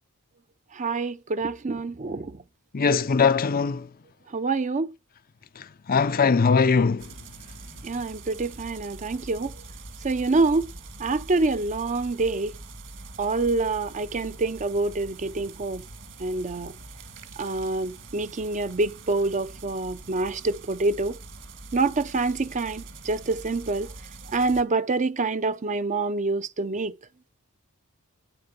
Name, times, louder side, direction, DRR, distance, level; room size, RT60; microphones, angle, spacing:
voice 1, 0.7-2.4 4.3-4.9 7.8-9.6 10.0-10.7 11.0-12.5 13.2-15.8 16.2-16.7 17.4-21.2 21.7-23.9 24.3-26.9, right 3 dB, 35° right, 0.6 m, -26 dB
voice 2, 2.7-3.9 5.6-7.1, left 5 dB, 40° left, 0.6 m, -21 dB
sound 1, 7.0-24.6, right 3 dB, 55° right, 2.2 m, -44 dB
9.7 x 8.7 x 6.0 m
head